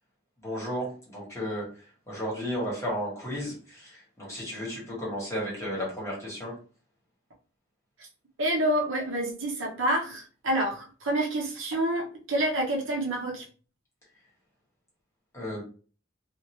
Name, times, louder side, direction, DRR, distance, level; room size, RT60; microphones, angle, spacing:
voice 1, 0.4-1.6 2.1-6.5 15.3-15.6, equal, 15° left, -4 dB, 1.5 m, -33 dB
voice 2, 8.4-13.4, right 1 dB, 70° right, 0 dB, 0.9 m, -28 dB
2.8 x 2.5 x 3.0 m, 0.38 s
head